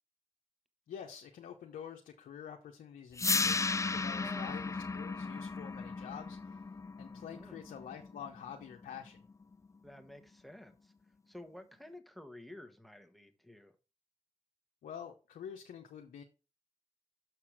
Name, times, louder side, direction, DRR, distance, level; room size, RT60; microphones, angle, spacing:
voice 1, 0.9-3.6 3.9-6.7 7.0-9.3 14.8-16.2, left 8 dB, 85° left, 0.9 m, -47 dB
sound 1, 3.2-9.2, left 4 dB, 20° left, 0.3 m, -35 dB
voice 2, 4.1-4.5 7.3-7.6 9.8-10.9 11.3-13.7, left 1 dB, ahead, 1.3 m, -51 dB
6.8 x 5.9 x 4.5 m
supercardioid pair, 40°, 14 cm